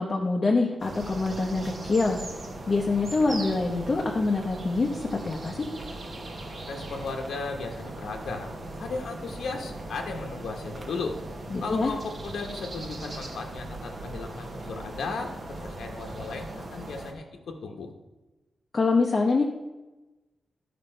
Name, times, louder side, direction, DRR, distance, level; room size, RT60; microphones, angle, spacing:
voice 1, 0.0-2.2 2.7-5.7 11.5-11.9 18.7-19.4, left 3 dB, 30° left, 0 dB, 0.7 m, -25 dB
sound 1, 0.8-17.1, right 1 dB, 35° right, 1.0 m, -39 dB
voice 2, 6.7-8.5 8.8-11.2 11.6-15.3 15.6-17.9, left 4 dB, 80° left, 3 dB, 0.9 m, -35 dB
12.0 x 5.1 x 4.4 m, 1.1 s
wide cardioid pair, 180°, 0 cm